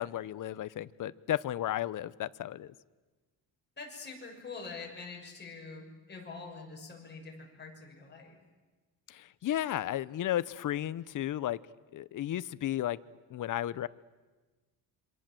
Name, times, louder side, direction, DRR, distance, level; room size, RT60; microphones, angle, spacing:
voice 1, 0.0-2.7 9.1-11.6 11.9-13.0 13.3-13.9, left 12 dB, 50° left, 17 dB, 0.8 m, -33 dB
voice 2, 3.8-8.4, left 4 dB, 25° left, 0 dB, 6.5 m, -45 dB
27.0 x 25.0 x 7.7 m, 1.3 s
cardioid pair, 140°, 40 cm